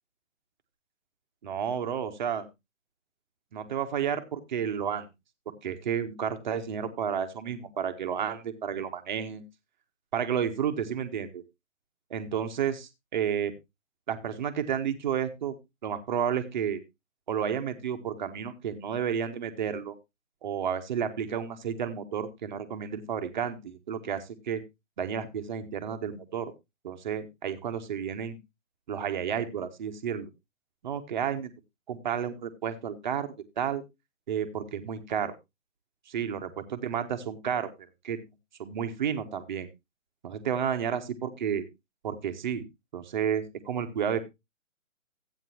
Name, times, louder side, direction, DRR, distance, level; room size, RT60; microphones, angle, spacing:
voice 1, 1.4-2.5 3.5-5.1 5.5-9.4 10.1-11.4 12.1-13.5 14.1-15.6 15.8-16.8 17.3-20.0 20.4-24.6 25.0-26.5 26.8-28.4 28.9-30.3 30.8-31.5 31.9-33.8 34.3-35.3 36.1-37.7 38.0-38.2 38.6-39.7 40.2-41.6 42.0-42.6 42.9-44.2, right 8 dB, 35° right, 8 dB, 1.1 m, -31 dB
14.0 x 9.0 x 2.8 m, 0.22 s
figure-of-eight pair, 140°, 41 cm